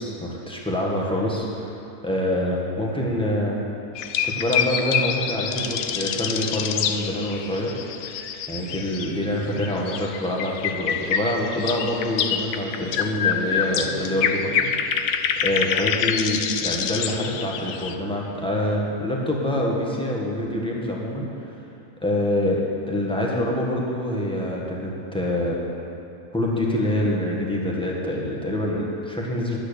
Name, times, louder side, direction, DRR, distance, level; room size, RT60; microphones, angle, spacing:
voice 1, 0.0-1.7 2.0-3.6 4.2-7.7 8.5-14.7 15.4-21.3 22.0-22.6 22.9-25.6 26.3-29.6, left 1 dB, 5° left, -3 dB, 1.5 m, -26 dB
sound 1, 4.0-9.2 9.5-17.9, left 7 dB, 70° left, 1.0 m, -26 dB
11.0 x 9.0 x 6.8 m, 2.8 s
omnidirectional pair, 1.7 m